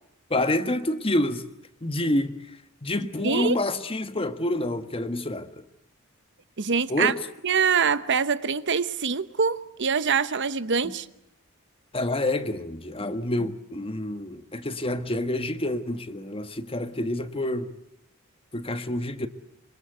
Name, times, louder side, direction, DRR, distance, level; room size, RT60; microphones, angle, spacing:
voice 1, 0.3-1.4 1.8-2.3 2.8-5.6 6.9-7.2 11.9-17.7 18.5-19.3, left 1 dB, 25° left, 1.4 m, -28 dB
voice 2, 3.2-3.6 6.6-7.1 7.4-11.1, right 6 dB, 55° right, 0.9 m, -24 dB
26.0 x 25.5 x 8.0 m
head